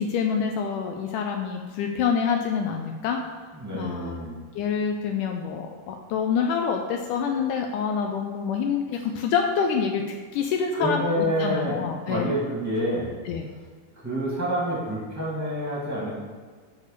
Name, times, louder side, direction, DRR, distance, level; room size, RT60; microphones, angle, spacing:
voice 1, 0.0-3.2 3.7-4.2 4.6-12.3 13.3-13.5, left 6 dB, 80° left, 3 dB, 1.9 m, -27 dB
voice 2, 3.5-4.4 10.7-11.8 12.1-13.1 13.9-16.1, equal, 10° right, -6 dB, 1.1 m, -28 dB
8.5 x 3.3 x 6.6 m, 1.5 s
omnidirectional pair, 4.0 m